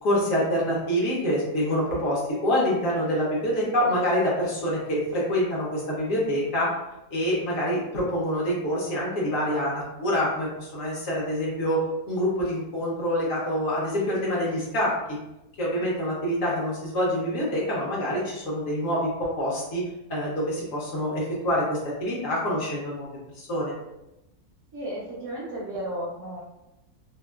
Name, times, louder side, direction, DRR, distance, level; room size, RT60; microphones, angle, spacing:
voice 1, 0.0-6.7 7.1-14.9 15.6-19.8 20.1-23.1 23.3-23.7, equal, 60° left, -5 dB, 1.0 m, -26 dB
voice 2, 24.7-26.4, right 1 dB, 65° right, -5 dB, 0.8 m, -34 dB
2.8 x 2.3 x 2.2 m, 0.95 s
omnidirectional pair, 1.7 m